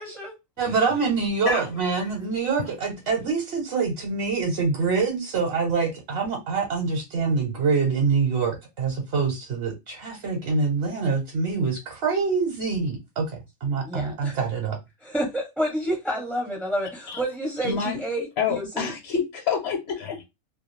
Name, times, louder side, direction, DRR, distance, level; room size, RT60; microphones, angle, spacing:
voice 1, 0.0-0.4 0.6-0.8 13.8-14.5 15.0-18.9, right 1 dB, ahead, 0.5 m, -29 dB
voice 2, 0.6-13.3 13.6-14.8, right 4 dB, 60° right, 1.0 m, -25 dB
voice 3, 17.6-18.0 18.4-20.2, left 6 dB, 65° left, 0.9 m, -27 dB
2.3 x 2.3 x 3.1 m
omnidirectional pair, 1.2 m